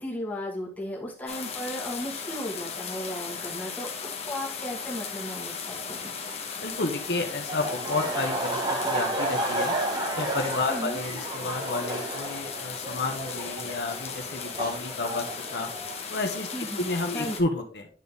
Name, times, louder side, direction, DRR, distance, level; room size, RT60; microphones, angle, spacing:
voice 1, 0.0-6.1 10.7-11.0 16.5-17.4, equal, 10° left, -3 dB, 1.6 m, -36 dB
sound 1, 1.3-17.4, left 6 dB, 35° left, 1.0 m, -37 dB
voice 2, 6.6-9.8 10.2-15.3 15.5-15.7 16.1-16.5 16.8-17.9, left 2 dB, 70° left, 4 dB, 0.9 m, -31 dB
Laughter, 7.4-16.0, right 2 dB, 25° right, 1.3 m, -32 dB
9.1 x 4.0 x 3.5 m, 0.43 s
head